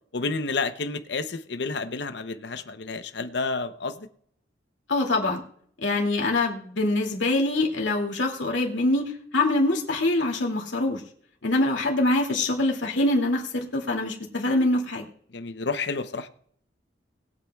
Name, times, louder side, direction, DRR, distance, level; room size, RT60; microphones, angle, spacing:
voice 1, 0.1-4.1 15.3-16.3, left 4 dB, 70° left, 0.7 m, -30 dB
voice 2, 4.9-5.4 5.8-11.0 11.4-15.1, left 2 dB, 85° left, 2.4 m, -24 dB
20.5 x 8.4 x 2.3 m
head